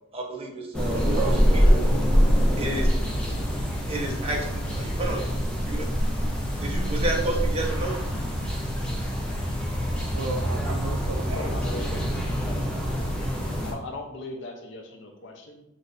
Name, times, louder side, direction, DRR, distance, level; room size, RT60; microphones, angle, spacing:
voice 1, 0.1-1.7 2.6-2.9 3.9-5.3 5.6-5.9 6.6-7.9, right 2 dB, 30° right, -1 dB, 0.8 m, -31 dB
sound 1, 0.7-13.7, equal, 5° left, 0.6 m, -25 dB
voice 2, 0.8-1.4 5.9-6.4 10.1-11.5, right 3 dB, 85° right, 6 dB, 0.5 m, -35 dB
voice 3, 11.4-12.0 13.6-15.6, left 2 dB, 60° left, 2 dB, 0.7 m, -38 dB
6.1 x 2.6 x 2.6 m, 0.82 s
head